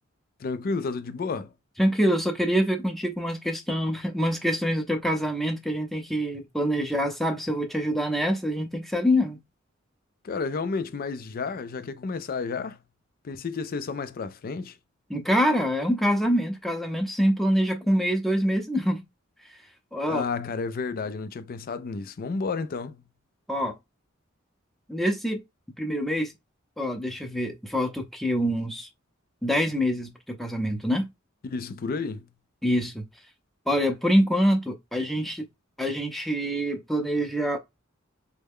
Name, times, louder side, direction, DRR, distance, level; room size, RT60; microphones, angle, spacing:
voice 1, 0.4-1.5 10.2-12.8 13.2-14.8 20.0-23.0 31.4-32.3, left 4 dB, 45° left, 0.4 m, -31 dB
voice 2, 1.8-9.4 15.1-19.0 19.4-19.6 19.9-20.2 23.5-23.8 24.9-25.4 25.8-26.3 26.8-28.9 29.4-31.1 32.6-33.0 33.7-35.4 35.8-37.6, equal, ahead, 0.6 m, -25 dB
3.2 x 2.1 x 3.5 m
head